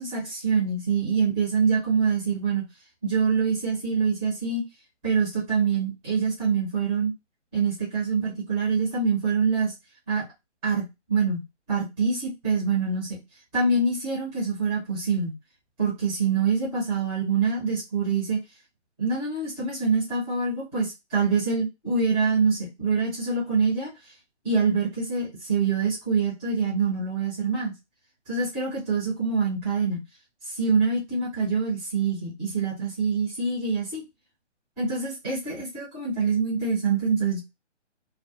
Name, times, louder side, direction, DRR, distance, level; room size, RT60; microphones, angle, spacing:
voice 1, 0.0-2.6 3.0-4.6 5.0-7.1 7.5-9.7 10.1-10.2 10.6-10.8 11.1-11.4 11.7-13.2 13.5-15.3 15.8-18.4 19.0-23.9 24.4-27.7 28.3-30.0 30.5-34.0 34.8-37.4, right 5 dB, 5° right, -7 dB, 0.6 m, -25 dB
2.4 x 2.2 x 2.8 m, 0.21 s
hypercardioid pair, 155°, 36 cm